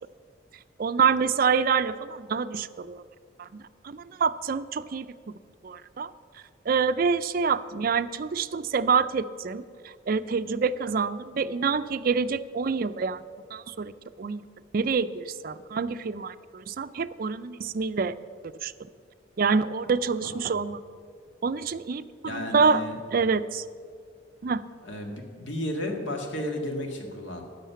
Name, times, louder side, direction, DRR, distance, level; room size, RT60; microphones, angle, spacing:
voice 1, 0.8-3.0 3.4-5.1 5.6-6.1 6.7-9.6 10.1-13.2 13.5-13.9 14.2-14.4 14.7-18.1 18.6-18.7 19.4-20.8 21.4-22.9 23.1-23.6 24.4-24.6, right 5 dB, 50° right, 13 dB, 0.4 m, -26 dB
voice 2, 22.2-22.9 24.8-27.4, left 1 dB, 80° left, 3 dB, 1.7 m, -33 dB
11.5 x 6.6 x 8.4 m, 2.1 s
head